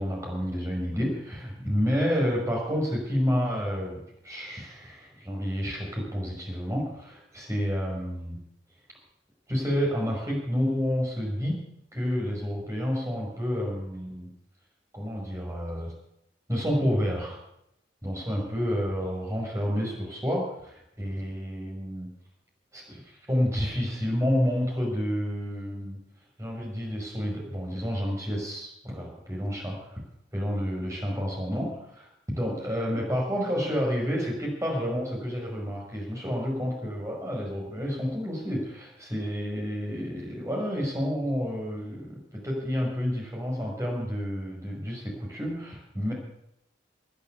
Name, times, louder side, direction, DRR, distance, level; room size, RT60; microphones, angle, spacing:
voice 1, 0.0-8.4 9.5-11.6 11.9-14.3 14.9-15.9 16.5-17.4 18.0-22.1 22.7-26.0 26.4-30.0 30.3-42.2 42.4-46.1, equal, 15° right, -1 dB, 5.5 m, -29 dB
20.0 x 7.1 x 8.3 m, 0.77 s
head